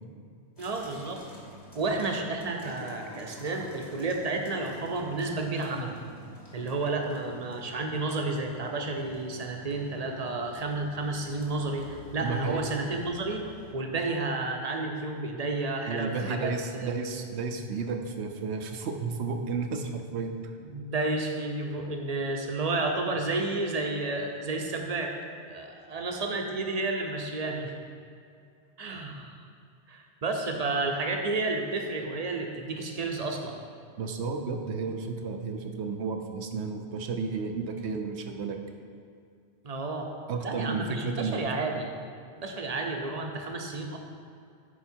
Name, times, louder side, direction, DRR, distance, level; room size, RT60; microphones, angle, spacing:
sound 1, 0.6-13.7, equal, 25° left, 1.2 m, -49 dB
voice 1, 0.6-1.2 1.7-6.0 6.5-13.5 13.7-16.9 20.6-25.1 25.4-27.7 28.8-29.4 29.9-33.6 39.6-40.1 40.4-41.9 42.4-44.0, right 3 dB, 40° right, 3 dB, 0.8 m, -31 dB
voice 2, 12.2-12.7 15.9-20.3 34.0-38.6 40.3-41.4, right 4 dB, 75° right, 5 dB, 1.0 m, -32 dB
10.5 x 4.6 x 4.5 m, 2.4 s
omnidirectional pair, 1.1 m